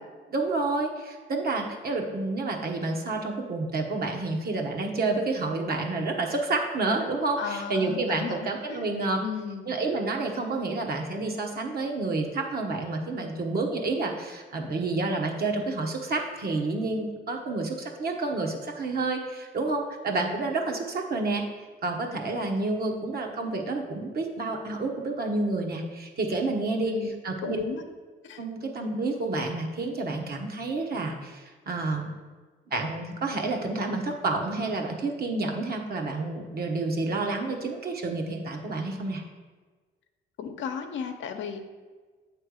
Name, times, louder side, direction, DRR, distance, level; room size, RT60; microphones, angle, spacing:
voice 1, 0.3-9.2 9.7-21.4 21.8-27.0 27.2-27.6 28.4-32.1 32.7-39.2, right 3 dB, 50° right, 2 dB, 1.2 m, -29 dB
voice 2, 7.4-8.9 9.2-9.7 26.8-27.1 27.4-27.8 28.2-28.4 40.4-41.6, left 7 dB, 70° left, 5 dB, 0.8 m, -35 dB
7.9 x 3.3 x 6.3 m, 1.4 s
cardioid pair, 90°, 20 cm